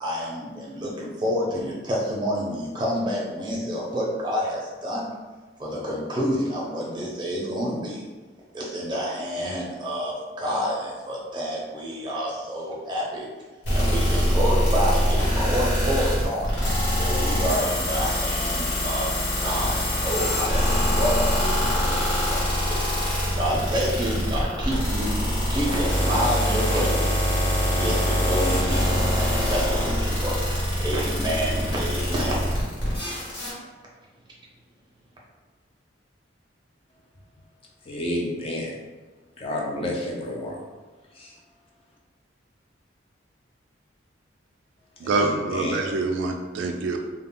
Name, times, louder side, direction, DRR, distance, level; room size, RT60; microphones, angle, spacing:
voice 1, 0.0-5.1 5.6-8.0 8.5-13.3 13.7-16.5 17.0-22.9 23.4-25.1 25.5-27.2 27.8-30.4 30.8-32.5, equal, 25° right, -4 dB, 0.5 m, -28 dB
sound 1, 13.6-33.5, equal, 60° left, 1.1 m, -24 dB
voice 2, 37.8-38.8 39.4-40.6 41.1-41.4 45.0-45.9, left 1 dB, 30° left, -1 dB, 0.4 m, -30 dB
voice 3, 45.0-47.0, right 3 dB, 75° right, 3 dB, 0.3 m, -25 dB
2.2 x 2.0 x 3.6 m, 1.3 s
head